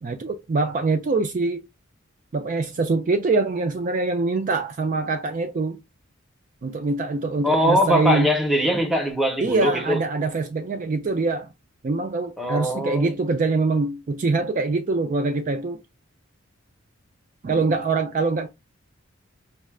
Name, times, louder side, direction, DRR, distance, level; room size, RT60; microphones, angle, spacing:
voice 1, 0.0-1.7 2.3-5.8 6.6-8.3 9.4-11.5 11.8-15.8 17.4-18.5, right 3 dB, 40° right, 0.4 m, -24 dB
voice 2, 7.4-10.0 12.4-13.1, equal, ahead, 0.8 m, -22 dB
5.9 x 2.1 x 2.3 m
head